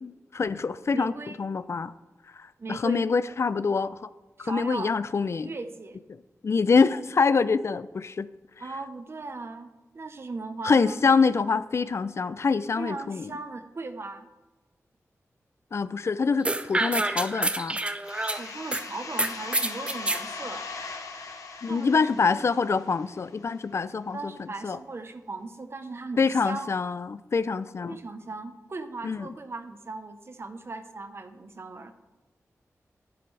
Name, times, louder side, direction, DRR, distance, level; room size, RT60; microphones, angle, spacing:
voice 1, 0.0-1.1 1.4-1.9 2.4-4.1 4.4-5.5 6.4-8.3 10.6-13.3 15.7-17.8 21.6-24.3 24.6-24.8 26.2-28.0 29.0-29.3, left 5 dB, 55° left, 15 dB, 0.4 m, -25 dB
voice 2, 0.9-1.4 2.6-3.1 4.4-4.9 5.4-6.0 8.6-11.0 12.8-14.3 18.4-20.6 21.7-22.6 24.1-26.7 27.9-31.9, right 3 dB, 50° right, 9 dB, 0.9 m, -38 dB
sound 1, 16.4-18.8 19.2-20.2, right 2 dB, 20° right, 0.6 m, -27 dB
sound 2, 18.1-23.6, left 4 dB, 90° left, 1.2 m, -40 dB
11.0 x 11.0 x 3.3 m, 1.1 s
wide cardioid pair, 75°, 6 cm